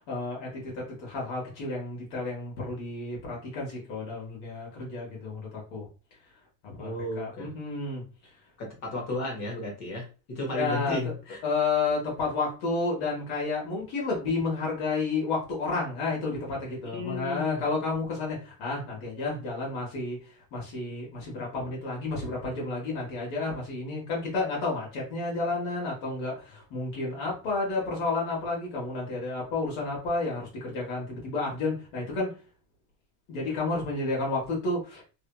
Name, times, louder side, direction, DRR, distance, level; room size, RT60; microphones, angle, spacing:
voice 1, 0.1-5.9 6.6-8.0 10.5-11.0 11.4-20.2 20.5-32.3 33.3-35.0, left 3 dB, 65° left, -3 dB, 1.3 m, -31 dB
voice 2, 6.8-7.5 8.6-11.4 16.9-17.7, left 1 dB, 35° left, 0 dB, 1.0 m, -34 dB
2.8 x 2.4 x 2.2 m, 0.34 s
cardioid pair, 170°, 48 cm